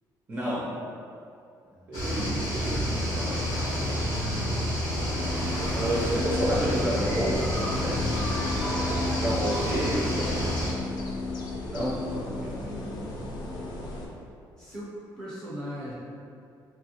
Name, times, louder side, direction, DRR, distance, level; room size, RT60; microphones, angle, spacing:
voice 1, 0.3-0.7 1.9-3.4 3.8-4.0 5.8-8.1 9.2-10.5 11.7-12.5, equal, 25° right, -9 dB, 0.5 m, -30 dB
sound 1, 1.9-10.7, equal, 80° left, 1.2 m, -29 dB
sound 2, 5.1-14.1, left 2 dB, 60° left, 0.4 m, -34 dB
sound 3, 5.5-6.8 7.8-7.9 8.6-8.7 9.2-9.3 9.8-9.9 10.5-10.6 10.9-11.0, right 2 dB, 85° right, 0.4 m, -44 dB
voice 2, 12.5-13.4 14.6-15.9, equal, 5° left, -10 dB, 0.7 m, -41 dB
3.0 x 2.3 x 2.8 m, 2.6 s
cardioid pair, 175°, 8 cm